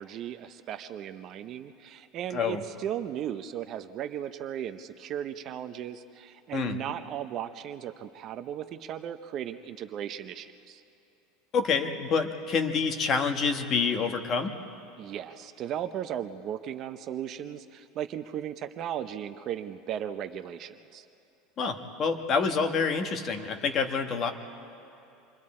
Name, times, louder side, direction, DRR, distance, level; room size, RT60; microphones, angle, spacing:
voice 1, 0.0-10.8 15.0-21.1, right 10 dB, 35° right, 10 dB, 0.6 m, -36 dB
voice 2, 11.5-14.5 21.6-24.3, left 5 dB, 30° left, 5 dB, 1.2 m, -27 dB
27.5 x 23.0 x 4.3 m, 2.8 s
supercardioid pair, 160°, 0 cm